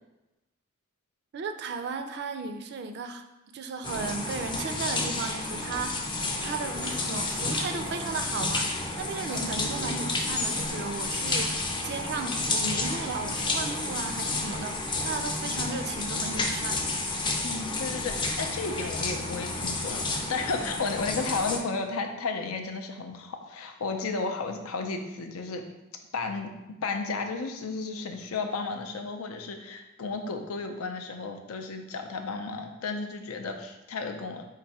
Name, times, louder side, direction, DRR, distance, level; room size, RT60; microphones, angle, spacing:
voice 1, 1.3-3.2 3.5-6.1 6.4-16.9, right 4 dB, 50° right, 8 dB, 0.4 m, -35 dB
sound 1, 3.8-21.6, left 2 dB, 20° left, 0.4 m, -31 dB
voice 2, 17.4-25.7 26.1-26.5 26.8-34.5, left 4 dB, 85° left, 5 dB, 0.5 m, -33 dB
4.6 x 2.5 x 4.1 m, 0.99 s
head